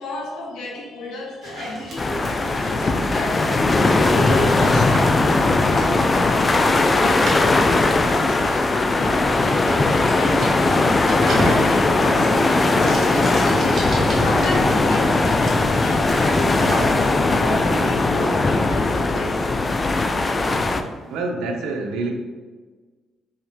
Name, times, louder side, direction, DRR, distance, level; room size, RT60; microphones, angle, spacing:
voice 1, 0.0-10.6 11.0-19.5, left 1 dB, 80° left, -1 dB, 1.2 m, -32 dB
sound 1, 1.4-21.2, right 1 dB, 60° right, 1.5 m, -35 dB
sound 2, 2.0-20.8, left 2 dB, 30° left, 0.4 m, -19 dB
voice 2, 21.1-22.1, right 3 dB, 90° right, 3 dB, 0.7 m, -26 dB
4.8 x 3.2 x 3.4 m, 1.4 s
cardioid pair, 90°, 0 cm